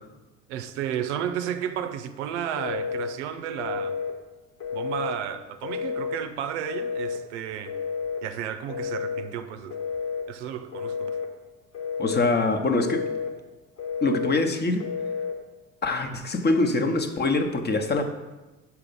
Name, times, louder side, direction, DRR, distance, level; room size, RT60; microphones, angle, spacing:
voice 1, 0.5-4.0 4.7-7.8 8.2-9.8 10.3-11.2, right 9 dB, 85° right, 0.5 m, -32 dB
Telephone, 2.6-3.1 3.6-4.2 4.6-5.2 5.6-6.2 6.6-7.2 7.7-8.2 8.7-9.3 9.7-10.3 10.7-11.3 11.7-12.3 12.7-13.3 13.8-14.4 14.8-15.4, left 6 dB, 45° left, 1.2 m, -31 dB
voice 2, 12.0-13.0 14.0-14.9 15.8-18.0, left 2 dB, 30° left, 0.8 m, -24 dB
5.8 x 4.7 x 5.3 m
hypercardioid pair, 65°, 34 cm